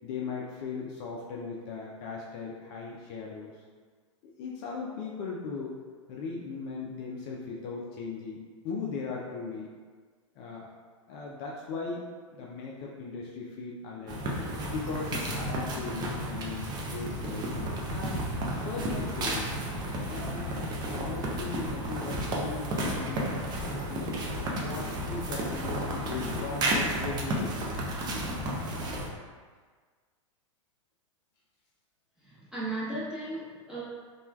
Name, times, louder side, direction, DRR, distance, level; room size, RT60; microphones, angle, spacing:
voice 1, 0.0-3.5 4.4-5.8 6.1-9.7 10.4-10.7 11.1-12.0 12.3-14.2 14.7-16.6 16.9-17.5 17.8-18.3 18.6-19.6 20.1-20.5 20.8-23.4 23.9-24.1 24.6-27.6 28.1-28.4, left 4 dB, 45° left, -3 dB, 0.4 m, -38 dB
sound 1, 14.1-29.1, right 1 dB, 25° right, 0.5 m, -32 dB
voice 2, 32.2-33.8, right 2 dB, 5° right, -10 dB, 1.0 m, -36 dB
3.0 x 2.3 x 2.3 m, 1.5 s
hypercardioid pair, 110°, 17 cm